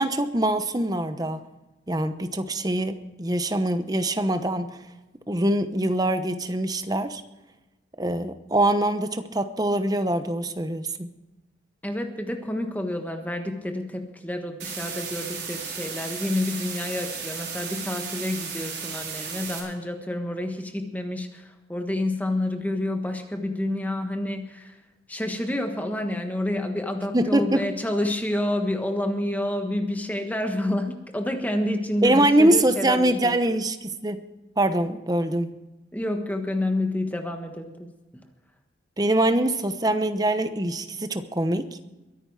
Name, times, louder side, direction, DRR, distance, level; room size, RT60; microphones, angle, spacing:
voice 1, 0.0-1.4 1.9-4.8 5.3-7.2 8.0-11.1 27.1-27.7 32.0-34.2 34.6-35.6 39.0-41.8, right 1 dB, 20° right, 10 dB, 0.9 m, -23 dB
voice 2, 11.8-24.7 25.1-33.4 35.9-37.9, left 1 dB, 10° left, 5 dB, 1.3 m, -29 dB
sound 1, 14.6-19.6, right 6 dB, 65° right, 5.3 m, -35 dB
22.5 x 10.0 x 4.9 m, 1.1 s
head